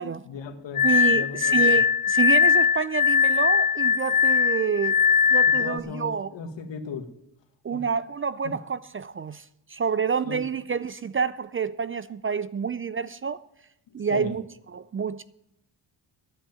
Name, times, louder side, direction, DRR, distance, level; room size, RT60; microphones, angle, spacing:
voice 1, 0.0-1.8 5.5-7.1 7.7-7.8 8.4-8.5 10.2-10.5 13.9-14.4, left 5 dB, 70° left, 1.6 m, -37 dB
Glass, 0.8-5.8, left 6 dB, 45° left, 0.8 m, -20 dB
voice 2, 0.8-5.0 5.3-6.3 7.6-13.4 13.9-14.4 14.7-15.2, right 6 dB, 30° right, 0.4 m, -28 dB
9.8 x 8.0 x 9.0 m
supercardioid pair, 60°, 46 cm